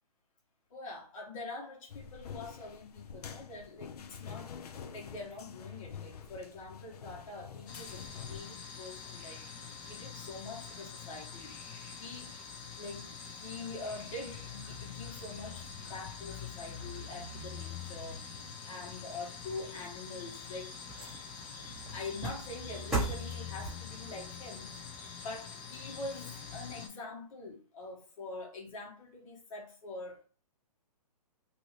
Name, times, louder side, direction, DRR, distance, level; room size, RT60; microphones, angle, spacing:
voice 1, 0.7-4.5 4.9-11.5 12.0-12.3 12.8-20.8 21.9-24.8 25.1-30.2, left 3 dB, 55° left, 1.3 m, -45 dB
sound 1, 1.9-8.4, left 7 dB, 75° left, 0.5 m, -47 dB
sound 2, 7.7-26.9, left 5 dB, 30° left, 0.6 m, -45 dB
sound 3, 19.9-26.4 26.9-27.0, right 2 dB, ahead, 0.9 m, -41 dB
2.7 x 2.6 x 3.1 m
hypercardioid pair, 145°, 20 cm